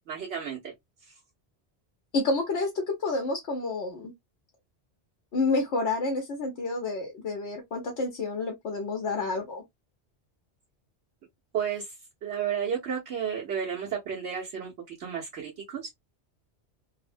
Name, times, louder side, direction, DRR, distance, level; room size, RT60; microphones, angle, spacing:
voice 1, 0.1-0.7 11.5-11.9 12.2-14.7 15.0-15.9, right 7 dB, 90° right, 1.2 m, -32 dB
voice 2, 2.1-4.1 5.3-9.6, left 3 dB, 85° left, 1.1 m, -29 dB
3.0 x 2.1 x 2.4 m
omnidirectional pair, 1.1 m